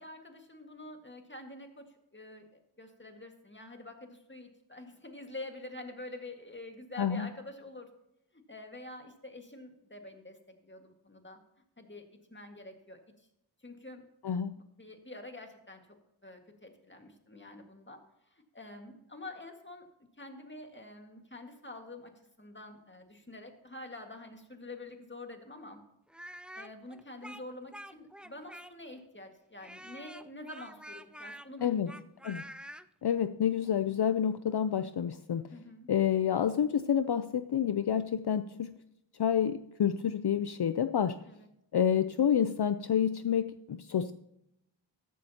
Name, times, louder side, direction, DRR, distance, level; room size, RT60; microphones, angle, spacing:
voice 1, 0.0-7.9 8.3-11.4 11.8-13.3 13.6-14.0 14.8-15.8 16.2-19.9 20.2-22.1 22.4-25.8 26.6-32.0 35.5-35.9 41.3-41.5, left 2 dB, 25° left, 4 dB, 1.9 m, -47 dB
voice 2, 7.0-7.3 14.2-14.5 31.6-31.9 32.2-32.4 33.0-35.4 35.9-38.7 39.2-41.2 41.7-44.1, left 8 dB, 60° left, 11 dB, 0.5 m, -28 dB
Speech, 26.1-29.0 29.6-32.9, equal, ahead, 0.4 m, -47 dB
14.0 x 11.0 x 2.9 m, 0.81 s
wide cardioid pair, 45°, 45 cm